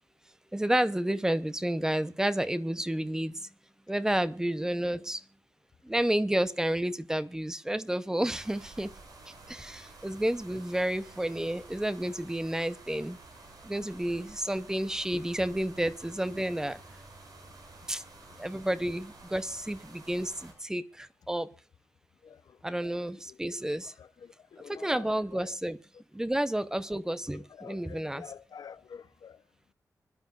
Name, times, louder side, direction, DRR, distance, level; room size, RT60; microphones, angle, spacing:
voice 1, 0.5-3.5 3.9-5.2 5.8-8.9 9.3-13.2 13.6-16.8 17.9-18.0 18.4-21.5 22.6-23.9 24.7-25.8 26.1-28.2, right 1 dB, 10° right, 0.7 m, -30 dB
river weir, 8.3-20.5, right 3 dB, 80° right, 7.0 m, -51 dB
voice 2, 22.2-23.0 23.3-25.5 27.5-29.4, left 7 dB, 85° left, 0.8 m, -49 dB
25.5 x 11.5 x 2.5 m
wide cardioid pair, 160°, 6 cm